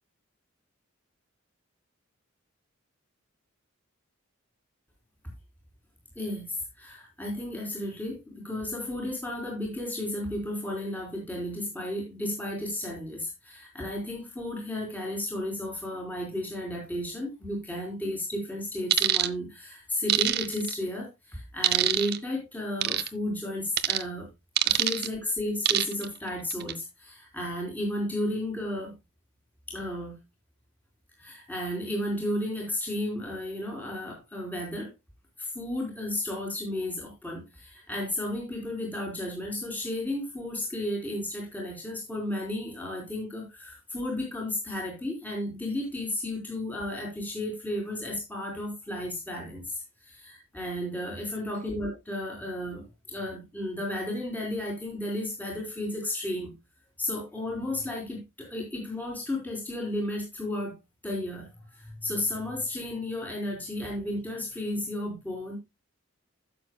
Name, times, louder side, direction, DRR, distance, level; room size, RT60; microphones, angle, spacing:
voice 1, 6.2-24.3 24.6-28.9 29.7-30.2 31.2-34.9 35.4-56.5 57.0-60.7 61.0-65.6, left 1 dB, 10° left, -1 dB, 3.9 m, -33 dB
sound 1, 18.9-19.3 20.1-20.7 21.6-22.2 22.8-23.1 23.8-24.0 24.6-25.1 25.7-26.1 26.5-26.7, right 11 dB, 45° right, 0.7 m, -24 dB
15.5 x 7.0 x 2.3 m, 0.22 s
head